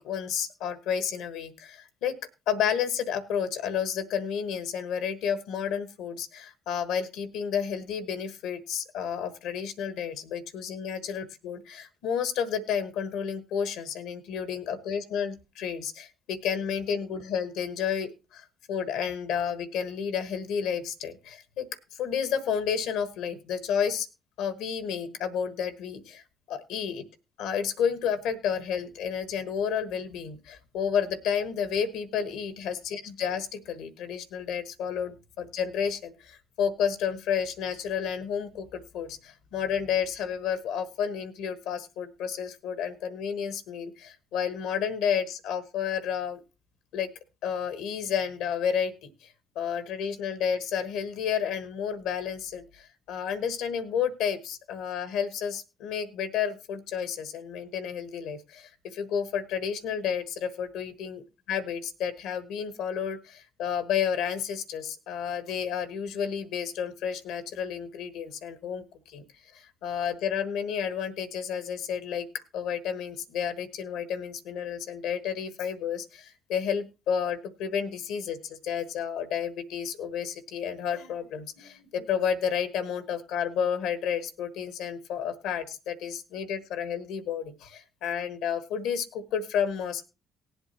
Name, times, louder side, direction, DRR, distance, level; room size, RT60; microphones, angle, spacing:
voice 1, 0.0-2.2 2.5-24.1 24.4-26.2 26.5-27.1 27.4-46.4 46.9-47.1 47.4-49.3 49.5-69.2 69.5-72.3 72.5-90.0, left 7 dB, 75° left, 13 dB, 1.3 m, -31 dB
19.0 x 8.0 x 2.9 m, 0.28 s
hypercardioid pair, 50°, 0 cm